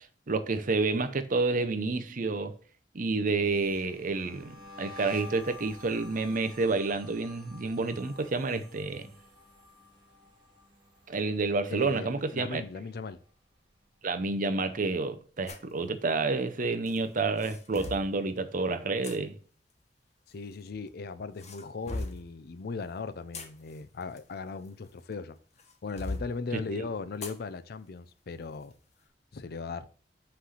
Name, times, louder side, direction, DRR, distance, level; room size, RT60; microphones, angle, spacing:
voice 1, 0.0-2.5 2.9-9.1 11.1-12.6 14.0-19.4 26.7-26.8, right 3 dB, 50° right, 0.6 m, -29 dB
sound 1, 3.5-12.6 12.9-13.3 13.7-15.2, left 3 dB, 25° right, 1.8 m, -51 dB
voice 2, 11.7-13.2 20.3-25.4 25.8-28.7 29.3-29.9, left 4 dB, 60° left, 0.5 m, -38 dB
sound 2, 15.5-15.7 16.9-18.1 19.0-19.2 20.3-20.9 21.4-22.3 23.1-25.1 25.6-26.3 27.2-27.4 27.9-28.0 28.5-28.7, left 2 dB, 40° left, 1.2 m, -39 dB
5.8 x 3.3 x 5.5 m
head